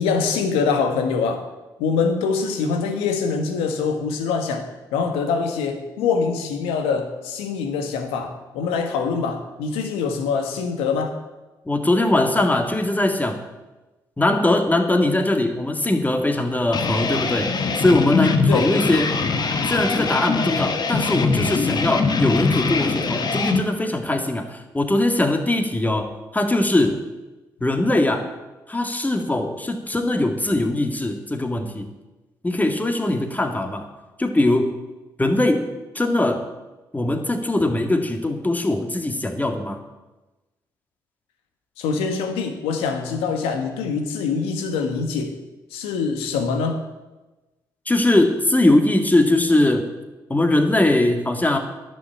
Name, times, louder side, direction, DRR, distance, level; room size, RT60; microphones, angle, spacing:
voice 1, 0.0-1.4 1.8-11.1 18.5-18.7 41.8-45.3 45.7-46.8, left 5 dB, 85° left, 6 dB, 1.4 m, -24 dB
voice 2, 11.7-13.4 14.2-19.2 19.6-27.0 27.6-28.3 28.7-31.9 32.4-33.9 34.2-34.7 35.2-35.6 35.9-36.4 36.9-39.8 47.9-49.8 50.3-51.6, left 1 dB, 15° left, 5 dB, 2.1 m, -21 dB
sound 1, 16.7-23.6, left 4 dB, 45° left, 1.3 m, -22 dB
11.0 x 7.1 x 8.4 m, 1.1 s
hypercardioid pair, 50°, 9 cm